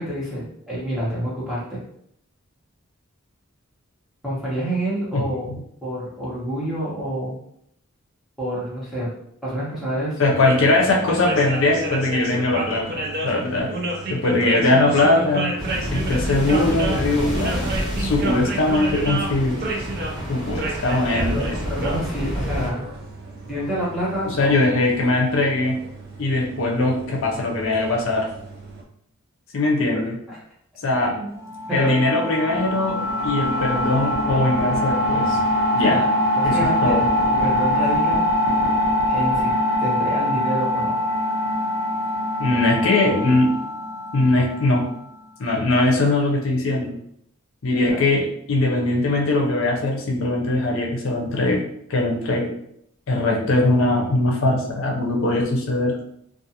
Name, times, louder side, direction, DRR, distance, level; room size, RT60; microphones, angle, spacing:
voice 1, 0.0-1.8 4.2-5.5 5.8-7.4 8.4-9.1 9.4-10.2 21.3-22.8 23.5-24.6 30.3-30.4 31.0-31.3 31.7-32.0 35.8-36.1 36.3-37.0 37.4-38.2 39.1-39.5 39.8-40.9 47.7-48.1, right 1 dB, ahead, -8 dB, 0.9 m, -28 dB
voice 2, 5.1-5.6 10.2-13.7 14.1-15.5 15.9-17.7 18.0-19.6 20.3-21.5 24.3-25.8 26.2-28.3 29.5-30.2 30.8-31.2 31.7-35.4 35.7-36.0 36.4-36.6 36.8-37.0 42.4-43.6 44.1-44.9 45.4-47.0 47.6-51.6 51.9-52.5 53.1-56.0, left 2 dB, 65° left, 0 dB, 0.5 m, -21 dB
sound 1, 10.3-28.8, right 2 dB, 45° right, 0.4 m, -31 dB
sound 2, 15.6-22.7, equal, 20° right, 1.3 m, -29 dB
sound 3, 31.4-44.8, left 1 dB, 65° right, 1.1 m, -23 dB
2.4 x 2.3 x 2.7 m, 0.72 s
head